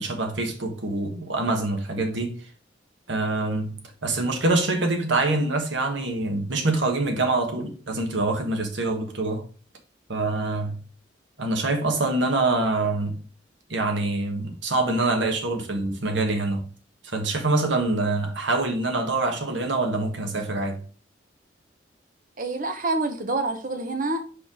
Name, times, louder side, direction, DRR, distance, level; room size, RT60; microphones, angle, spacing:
voice 1, 0.0-2.4 3.1-9.4 10.1-10.8 11.4-13.2 13.7-16.7 17.0-20.8, right 2 dB, 70° right, 1.4 m, -25 dB
voice 2, 22.4-24.2, right 2 dB, 45° right, 1.0 m, -27 dB
5.1 x 4.5 x 4.9 m
head